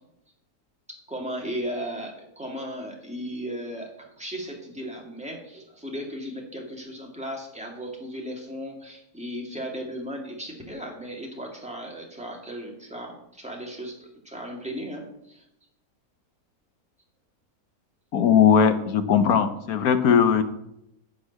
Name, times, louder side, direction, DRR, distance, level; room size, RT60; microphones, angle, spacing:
voice 1, 1.1-3.9 4.2-15.4, equal, 5° right, -1 dB, 2.3 m, -36 dB
voice 2, 18.1-20.4, left 7 dB, 80° left, 10 dB, 1.4 m, -19 dB
10.0 x 5.5 x 8.3 m, 0.80 s
omnidirectional pair, 1.6 m